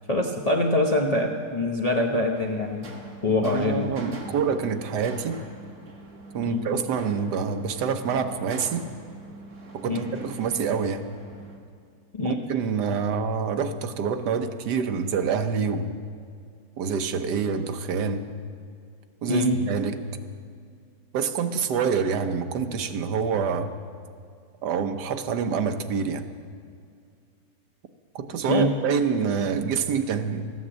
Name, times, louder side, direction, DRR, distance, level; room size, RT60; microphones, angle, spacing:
voice 1, 0.1-2.9 3.2-3.9 6.4-6.7 9.8-10.1 12.1-12.4 19.3-19.6 28.5-28.7, left 2 dB, 30° left, 0 dB, 0.7 m, -24 dB
sound 1, 2.3-11.6, right 2 dB, 60° right, 2.0 m, -44 dB
voice 2, 3.4-5.4 6.3-8.9 9.7-11.0 12.2-16.0 16.8-18.3 19.2-20.0 21.1-23.7 24.6-26.2 28.1-30.5, right 6 dB, 90° right, 8 dB, 1.4 m, -26 dB
14.5 x 9.6 x 7.4 m, 2.3 s
omnidirectional pair, 1.7 m